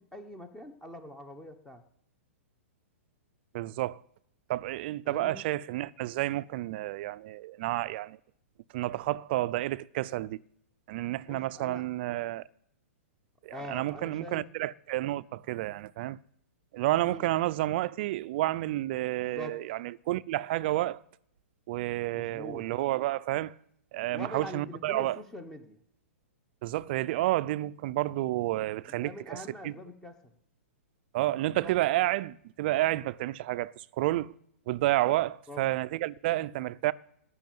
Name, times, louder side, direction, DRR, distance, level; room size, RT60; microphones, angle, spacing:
voice 1, 0.0-1.8 5.0-5.5 11.3-11.9 13.5-14.4 17.0-17.3 19.2-19.6 22.1-22.7 24.1-25.8 28.9-30.3 31.5-31.7 35.5-35.6, left 1 dB, 5° left, 1.2 m, -44 dB
voice 2, 3.5-4.0 4.5-8.2 8.7-10.4 10.9-12.4 13.4-16.2 16.7-21.0 21.7-23.5 23.9-25.2 26.6-29.7 31.1-34.3 34.7-36.9, right 16 dB, 45° right, 0.5 m, -30 dB
18.0 x 6.4 x 9.3 m
hypercardioid pair, 145°, 8 cm